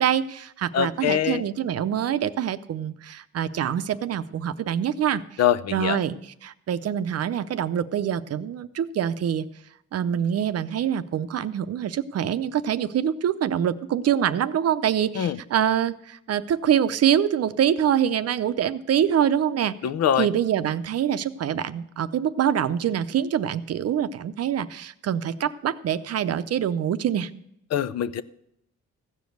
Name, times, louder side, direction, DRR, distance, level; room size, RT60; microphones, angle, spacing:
voice 1, 0.0-5.4 5.7-6.2 6.4-9.5 9.9-19.8 20.2-27.3, right 9 dB, 55° right, 12 dB, 0.7 m, -25 dB
voice 2, 0.7-1.4 5.4-6.0 15.2-15.4 19.8-20.3 27.7-28.2, left 10 dB, 60° left, 15 dB, 0.6 m, -23 dB
15.5 x 5.2 x 7.8 m, 0.78 s
cardioid pair, 90°, 30 cm